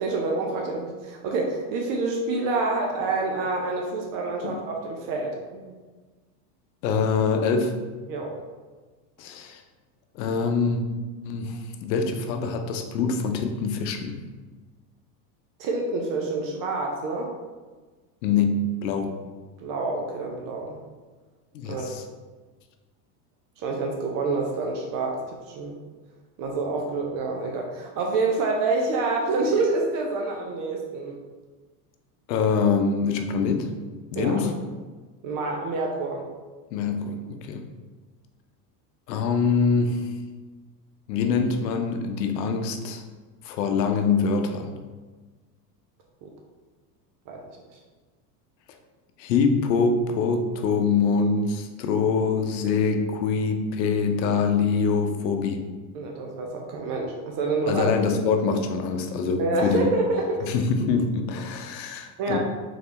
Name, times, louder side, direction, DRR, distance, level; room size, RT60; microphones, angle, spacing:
voice 1, 0.0-5.7 8.1-8.4 15.6-17.3 19.6-20.8 21.6-21.9 23.6-25.8 26.4-31.2 34.1-34.4 35.2-36.2 46.2-46.3 47.3-47.4 55.9-57.9 59.4-60.5 62.2-62.4, right 3 dB, 45° right, 1 dB, 0.7 m, -27 dB
voice 2, 6.8-7.7 9.2-9.6 10.1-10.8 11.2-14.2 18.2-19.1 21.5-22.0 32.3-33.7 34.1-34.5 36.7-37.6 39.1-40.1 41.1-43.0 43.4-44.7 49.2-55.6 57.7-59.9 60.4-62.4, left 5 dB, 85° left, 6 dB, 0.7 m, -24 dB
3.9 x 3.3 x 3.0 m, 1.3 s
supercardioid pair, 115°, 49 cm